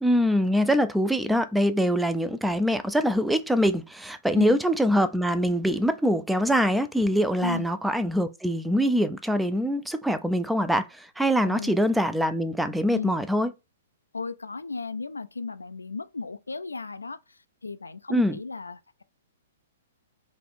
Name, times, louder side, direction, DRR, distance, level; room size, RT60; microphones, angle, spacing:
voice 1, 0.0-13.5 18.1-18.4, equal, 5° right, 0.4 m, -24 dB
voice 2, 11.4-11.7 12.9-13.1 14.1-19.0, left 4 dB, 85° left, 0.3 m, -35 dB
4.0 x 2.4 x 3.6 m
figure-of-eight pair, 115°, 0 cm